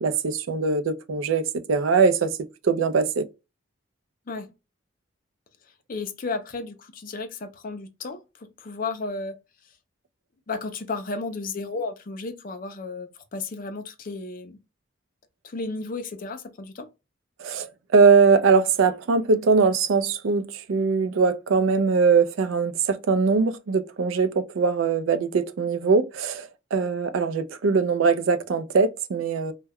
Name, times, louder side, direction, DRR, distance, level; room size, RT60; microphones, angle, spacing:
voice 1, 0.0-2.3 2.6-3.2 17.4-29.5, right 5 dB, 75° right, 0.4 m, -21 dB
voice 2, 5.9-9.3 10.5-14.6 15.4-16.9, left 3 dB, 45° left, 0.4 m, -33 dB
2.2 x 2.1 x 3.4 m
head